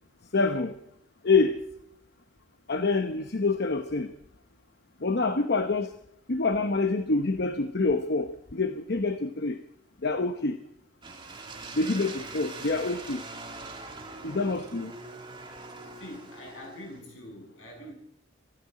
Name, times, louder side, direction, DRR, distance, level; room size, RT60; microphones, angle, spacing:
voice 1, 0.3-0.8 1.2-1.6 2.7-4.1 5.0-6.0 6.3-9.6 10.0-10.6 11.7-13.2 14.2-14.9, left 3 dB, 55° left, 0.9 m, -26 dB
sound 1, 11.0-17.0, right 3 dB, 25° right, 2.9 m, -42 dB
voice 2, 15.9-17.9, equal, 80° left, 7.8 m, -44 dB
25.5 x 13.5 x 4.2 m
head